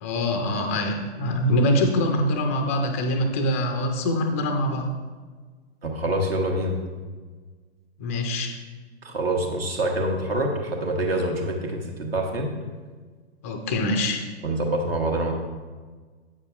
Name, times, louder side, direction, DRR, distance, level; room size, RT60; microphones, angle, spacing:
voice 1, 0.0-4.9 8.0-8.5 13.4-14.2, left 1 dB, 15° left, 4 dB, 0.3 m, -24 dB
voice 2, 5.8-6.8 9.0-12.5 14.4-15.3, right 1 dB, 60° right, 2 dB, 1.3 m, -26 dB
8.5 x 6.6 x 2.3 m, 1.4 s
figure-of-eight pair, 110°, 33 cm